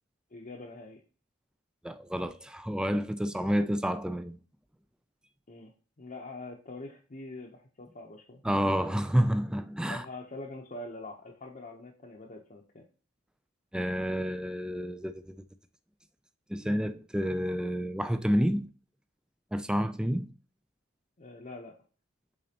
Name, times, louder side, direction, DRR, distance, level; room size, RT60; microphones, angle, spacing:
voice 1, 0.3-1.0 5.5-5.7 6.0-8.4 9.9-12.8 21.2-21.8, left 2 dB, 40° left, 0.8 m, -44 dB
voice 2, 1.8-4.4 8.4-10.1 13.7-15.4 16.5-18.7 19.5-20.3, equal, 5° right, 0.3 m, -29 dB
8.4 x 4.0 x 2.9 m
head